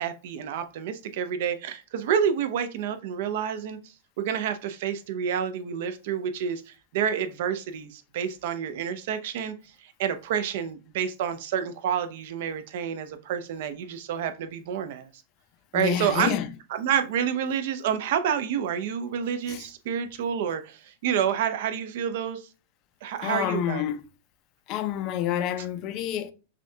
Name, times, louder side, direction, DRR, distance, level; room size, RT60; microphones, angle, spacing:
voice 1, 0.0-9.5 9.8-15.1 15.7-16.4 16.7-22.5 23.0-23.8, right 8 dB, 55° right, 0.6 m, -29 dB
voice 2, 15.7-16.5 19.5-19.6 23.2-24.0 24.7-26.3, left 10 dB, 35° left, 0.4 m, -28 dB
6.0 x 2.3 x 2.7 m
supercardioid pair, 155°, 0 cm